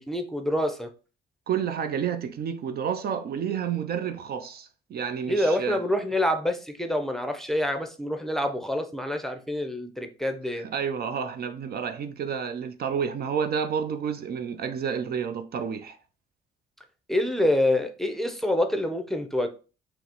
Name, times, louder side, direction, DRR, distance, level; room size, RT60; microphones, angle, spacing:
voice 1, 0.1-0.9 5.3-10.7 17.1-19.5, left 1 dB, ahead, 0.6 m, -26 dB
voice 2, 1.5-5.8 10.6-16.0, right 7 dB, 55° right, 0.4 m, -30 dB
5.6 x 2.0 x 2.9 m
cardioid pair, 90°, 20 cm